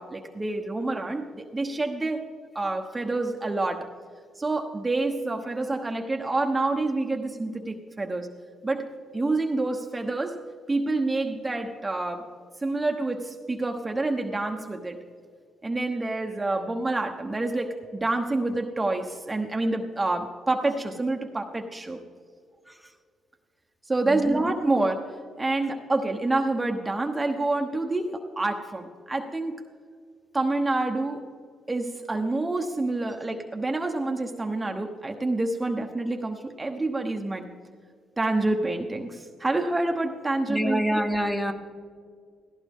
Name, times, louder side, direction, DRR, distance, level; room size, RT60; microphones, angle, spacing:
voice 1, 0.0-2.3 2.5-3.9 4.4-8.3 8.6-8.9 9.1-10.4 10.7-12.3 12.6-15.0 15.6-22.0 23.8-29.7 30.3-31.3 31.7-37.5 38.2-41.0, right 2 dB, 20° right, 3 dB, 1.1 m, -27 dB
voice 2, 24.1-24.4 40.5-41.5, equal, 5° left, 5 dB, 1.4 m, -26 dB
17.5 x 16.0 x 3.7 m, 2.1 s
cardioid pair, 90°, 0 cm